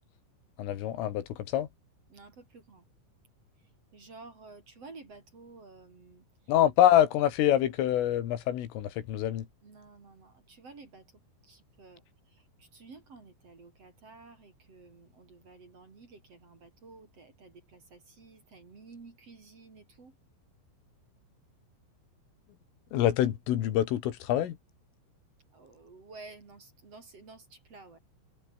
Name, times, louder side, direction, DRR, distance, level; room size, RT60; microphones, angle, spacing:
voice 1, 0.6-1.7 6.5-9.5 22.9-24.6, left 12 dB, 80° left, 4.6 m, -26 dB
voice 2, 2.1-2.8 3.9-6.2 9.6-11.0 11.4-12.0 12.6-20.1 25.5-28.0, right 3 dB, 35° right, 4.0 m, -52 dB
omnidirectional pair, 5.7 m